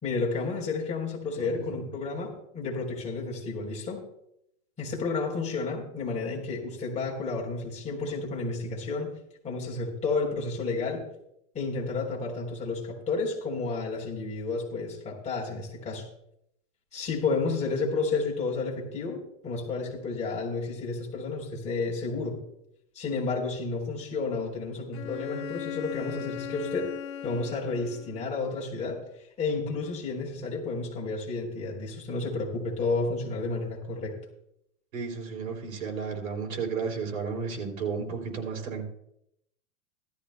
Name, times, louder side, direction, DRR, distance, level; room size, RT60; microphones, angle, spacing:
voice 1, 0.0-4.0 4.8-9.1 9.4-11.0 11.5-16.1 16.9-22.4 23.0-26.9 27.2-29.0 29.4-34.2, left 3 dB, 15° left, -2 dB, 3.6 m, -31 dB
voice 2, 1.3-1.8 34.9-38.9, right 5 dB, 85° right, 1 dB, 3.3 m, -33 dB
Bowed string instrument, 24.9-28.4, left 10 dB, 90° left, 1.4 m, -38 dB
16.5 x 13.5 x 2.2 m, 0.77 s
hypercardioid pair, 140°, 40 cm